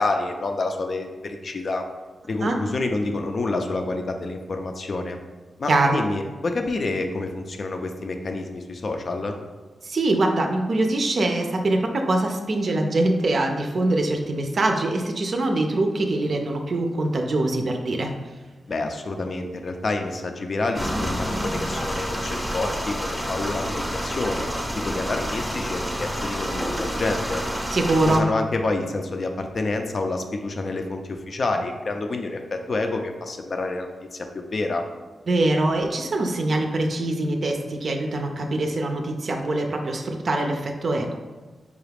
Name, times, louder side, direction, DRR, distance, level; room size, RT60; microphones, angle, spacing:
voice 1, 0.0-1.8 2.3-5.2 5.6-9.3 18.7-27.4 28.0-34.8, left 2 dB, 55° left, 4 dB, 0.4 m, -28 dB
voice 2, 5.7-6.0 9.8-18.1 27.7-28.3 35.3-41.1, right 2 dB, 60° right, 3 dB, 0.4 m, -23 dB
sound 1, 20.7-28.2, equal, 5° left, 0.7 m, -28 dB
4.8 x 2.3 x 3.4 m, 1.3 s
cardioid pair, 70°, 0 cm